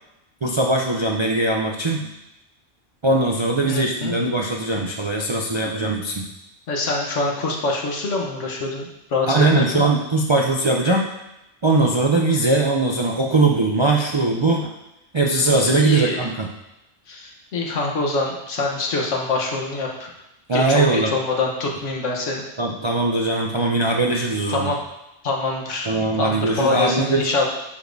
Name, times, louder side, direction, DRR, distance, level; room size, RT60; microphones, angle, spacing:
voice 1, 0.4-2.1 3.0-6.2 9.3-11.0 11.6-14.7 15.1-16.5 20.5-21.1 22.6-24.7 25.9-27.3, right 2 dB, 45° right, 0 dB, 0.4 m, -20 dB
voice 2, 3.6-4.1 6.7-9.9 15.8-16.3 17.1-20.1 20.5-22.4 24.5-24.8 25.2-25.9 26.2-27.5, left 3 dB, 80° left, 0 dB, 1.4 m, -25 dB
10.5 x 5.0 x 2.6 m, 0.91 s
omnidirectional pair, 1.2 m